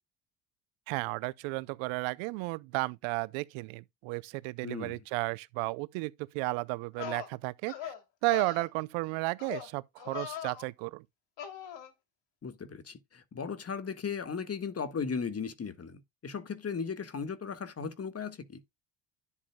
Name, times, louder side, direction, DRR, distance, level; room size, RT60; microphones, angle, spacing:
voice 1, 0.9-7.9 8.2-11.0, right 25 dB, 75° right, 0.7 m, -33 dB
voice 2, 4.6-5.0 12.4-18.6, left 6 dB, 30° left, 1.5 m, -37 dB
sound 1, 6.5-6.6 7.0-7.3 7.7-8.0 8.3-8.7 9.4-9.7 10.0-10.6 11.4-11.9, left 10 dB, 65° left, 2.9 m, -40 dB
11.0 x 7.2 x 2.2 m
hypercardioid pair, 65°, 47 cm